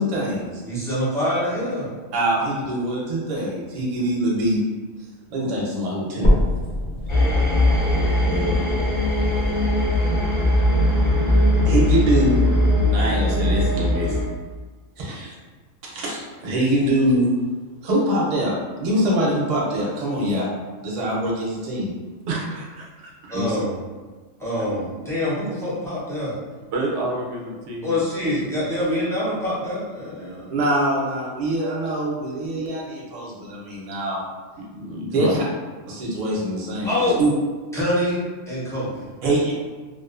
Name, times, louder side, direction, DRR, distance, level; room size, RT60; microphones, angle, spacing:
voice 1, 0.0-0.6 2.1-4.6 5.3-6.4 8.2-8.5 11.6-12.4 12.8-14.2 15.0-15.3 15.8-17.3 17.8-20.5 20.8-21.9 23.3-23.6 30.5-34.2 35.1-35.4 35.9-37.3 39.2-39.5, right 1 dB, 45° right, -5 dB, 0.6 m, -23 dB
voice 2, 0.6-1.9 23.3-23.8 24.4-26.4 27.8-30.5 36.8-37.3 37.7-39.1, left 1 dB, 5° left, -9 dB, 0.4 m, -25 dB
sound 1, 6.2-10.2 10.8-10.9 11.5-11.6 11.9-12.0 12.8-12.9, equal, 55° left, 0.7 m, -25 dB
sound 2, 7.1-14.2, left 1 dB, 25° left, 0.9 m, -20 dB
voice 3, 22.3-23.4 26.7-28.0 34.6-35.3, right 2 dB, 70° right, -2 dB, 0.8 m, -29 dB
2.4 x 2.3 x 2.4 m, 1.4 s
omnidirectional pair, 1.3 m